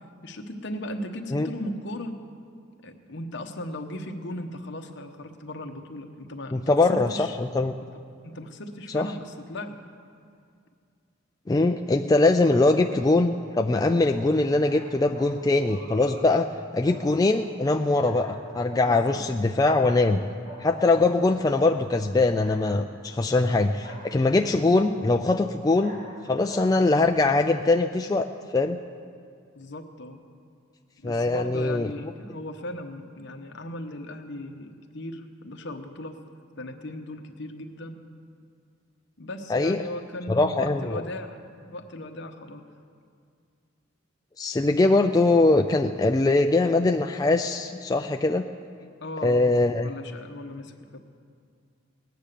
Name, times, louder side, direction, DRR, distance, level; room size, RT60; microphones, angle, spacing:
voice 1, 0.2-2.1 2.8-7.4 8.2-9.8 18.8-19.2 29.5-30.2 31.0-36.1 36.6-38.0 39.2-42.6 49.0-51.0, left 1 dB, 60° left, 5 dB, 1.1 m, -37 dB
voice 2, 6.5-7.7 8.9-9.1 11.5-16.5 16.7-20.2 20.6-26.0 26.2-28.3 28.5-28.8 31.0-31.9 39.5-39.8 40.3-41.0 44.4-48.4 49.2-49.9, left 2 dB, 20° left, 4 dB, 0.3 m, -22 dB
sound 1, 10.3-10.4 12.4-12.6 13.9-15.3 15.6-16.2 16.8-17.0 17.3-18.4 18.7-20.2 20.4-21.2 21.5-21.7 22.4-22.6 23.1-23.2 23.8-24.2 25.8-26.7 27.0-27.1, right 1 dB, 55° right, 5.0 m, -45 dB
19.0 x 9.4 x 6.8 m, 2.2 s
head